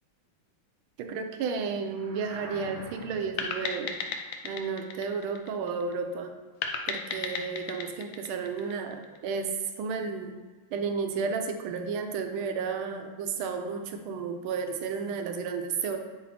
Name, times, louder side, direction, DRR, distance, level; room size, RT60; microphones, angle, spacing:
voice 1, 1.0-4.0 4.4-6.4 6.9-10.3 10.7-16.0, right 5 dB, 90° right, 6 dB, 1.5 m, -32 dB
sound 1, 1.8-3.5, equal, 65° right, 2.1 m, -44 dB
sound 2, 3.4-5.9 6.6-9.2, left 5 dB, 80° left, 1.3 m, -35 dB
8.4 x 2.9 x 4.1 m, 1.4 s
omnidirectional pair, 2.2 m